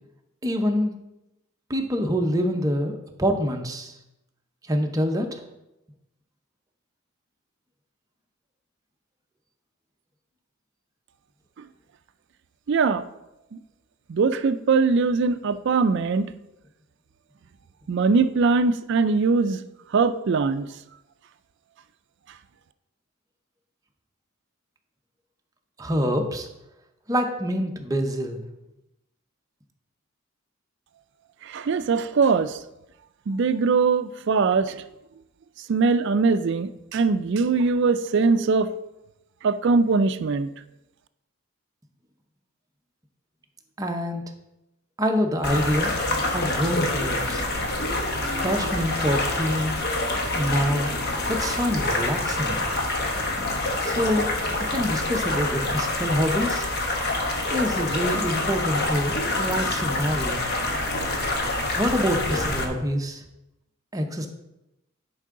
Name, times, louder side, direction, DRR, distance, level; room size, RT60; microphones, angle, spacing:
voice 1, 0.4-0.9 1.7-3.9 4.7-5.4 25.8-26.5 27.1-28.4 43.8-44.2 45.0-45.9 46.3-47.4 48.4-49.7 50.3-50.9 51.3-52.6 53.8-54.3 54.7-56.7 57.5-60.4 61.8-63.2 63.9-64.3, equal, 15° right, 3 dB, 0.7 m, -26 dB
voice 2, 12.7-13.0 14.1-16.3 17.9-19.6 19.9-20.7 31.4-32.6 33.3-34.8 35.7-38.7 39.4-40.5, right 4 dB, 55° right, 12 dB, 0.4 m, -21 dB
sound 1, 45.4-62.6, left 2 dB, 50° left, 1.1 m, -26 dB
10.5 x 4.6 x 3.7 m, 0.91 s
head